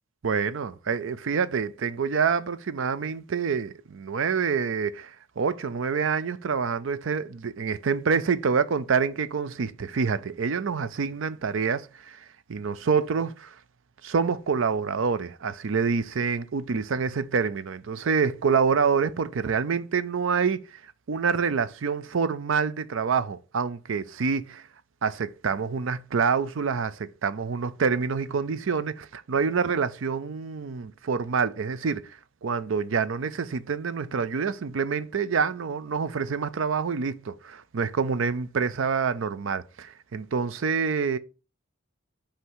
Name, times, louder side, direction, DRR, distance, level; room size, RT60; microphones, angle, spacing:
voice 1, 0.2-13.6 14.0-24.6 25.0-32.1 32.4-41.2, right 5 dB, 70° right, 0.5 m, -27 dB
5.6 x 3.4 x 5.5 m
head